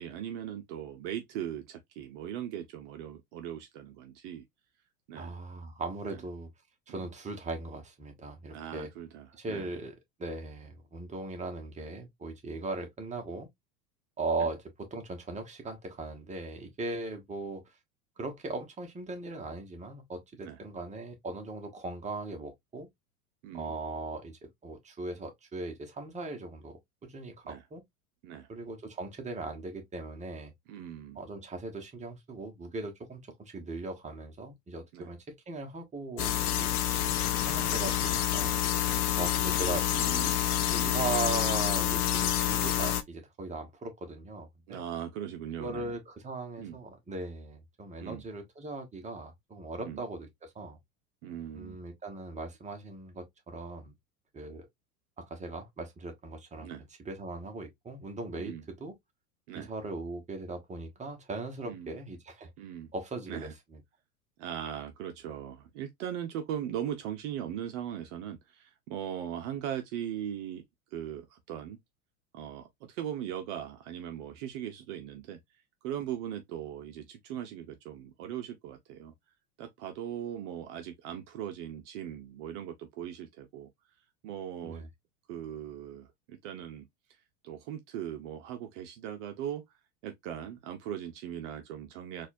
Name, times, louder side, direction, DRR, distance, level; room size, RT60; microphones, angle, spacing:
voice 1, 0.0-4.4 5.1-5.4 6.1-6.2 6.9-7.1 8.5-9.7 20.4-20.6 23.4-23.8 27.4-27.6 28.2-28.5 30.7-31.2 34.9-35.1 44.7-45.9 46.6-46.8 48.0-48.2 49.8-50.0 51.2-51.8 56.6-56.8 58.3-58.6 59.5-59.7 61.6-62.0 62.6-62.9 63.3-63.5 64.4-70.6 70.9-71.8 72.3-75.4 75.8-79.1 79.6-83.7 84.2-84.9 85.3-86.8 87.4-92.3, right 10 dB, 55° right, 0.7 m, -39 dB
voice 2, 5.1-6.5 6.9-8.9 9.3-13.5 14.2-17.7 18.2-22.9 23.5-27.8 28.5-30.5 31.1-36.7 37.5-38.6 39.2-40.3 40.7-44.8 45.6-50.8 51.5-53.9 54.3-54.7 55.2-56.7 57.0-58.9 59.5-62.5 62.9-63.8 84.6-84.9, right 3 dB, 15° right, 1.2 m, -39 dB
sound 1, 36.2-43.0, left 11 dB, 80° left, 0.7 m, -28 dB
4.1 x 2.6 x 2.5 m
hypercardioid pair, 90°, 44 cm